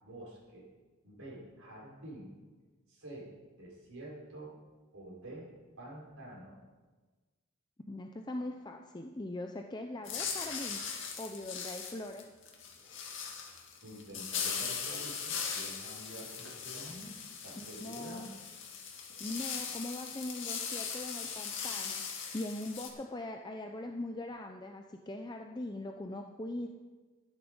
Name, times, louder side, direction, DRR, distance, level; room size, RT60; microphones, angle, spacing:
voice 1, 0.0-0.7 1.0-2.3 2.9-3.3 3.5-4.6 4.9-5.5 5.8-6.6 13.8-17.1 17.4-18.3, right 1 dB, 70° right, -4 dB, 5.1 m, -48 dB
voice 2, 7.9-10.8 11.2-12.2 17.5-18.3 19.2-26.7, left 1 dB, 20° left, 3 dB, 0.5 m, -41 dB
sound 1, 10.0-22.9, left 6 dB, 55° left, 2.1 m, -39 dB
13.0 x 10.5 x 5.4 m, 1.3 s
head